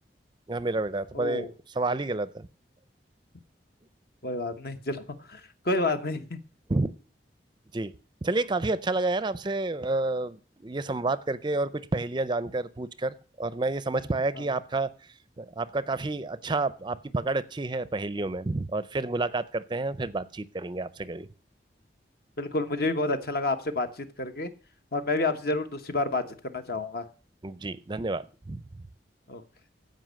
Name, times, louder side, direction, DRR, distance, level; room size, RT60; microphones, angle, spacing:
voice 1, 0.5-2.5 6.7-6.9 7.7-7.9 8.2-14.9 15.4-21.3 27.4-28.6, right 2 dB, 25° right, 16 dB, 0.5 m, -29 dB
voice 2, 1.1-1.5 4.2-6.4 14.3-14.4 22.4-24.5 24.9-27.0 29.3-29.4, left 2 dB, 55° left, 8 dB, 1.1 m, -29 dB
15.0 x 5.4 x 6.4 m, 0.38 s
head